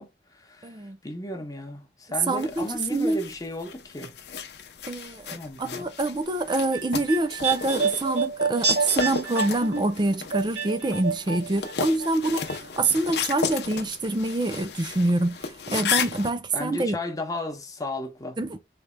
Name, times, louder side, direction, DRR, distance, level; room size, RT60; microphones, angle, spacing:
voice 1, 0.0-4.1 5.3-5.9 16.5-18.4, left 2 dB, 20° left, 0.8 m, -35 dB
voice 2, 0.6-1.0 2.3-3.2 4.9-17.0 18.4-18.6, right 2 dB, 25° right, 0.5 m, -26 dB
sound 1, 2.4-16.3, left 6 dB, 65° left, 0.7 m, -34 dB
sound 2, 6.5-11.7 12.0-12.9 13.2-13.3, right 5 dB, 75° right, 2.6 m, -28 dB
4.3 x 3.3 x 2.2 m
head